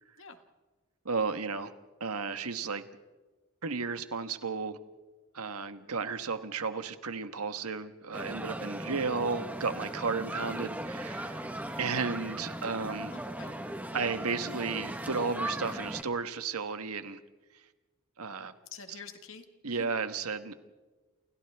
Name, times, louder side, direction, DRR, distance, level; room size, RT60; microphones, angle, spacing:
voice 1, 1.0-1.7 2.0-2.8 3.6-4.8 5.3-11.4 11.8-13.1 13.9-17.2 18.2-18.5 19.6-20.5, right 4 dB, 90° right, 9 dB, 1.4 m, -33 dB
sound 1, 8.1-16.0, right 1 dB, 5° right, 1.3 m, -38 dB
voice 2, 11.4-11.8 13.1-13.7 18.7-19.9, left 5 dB, 60° left, 6 dB, 1.8 m, -48 dB
29.5 x 28.5 x 3.6 m, 1.2 s
head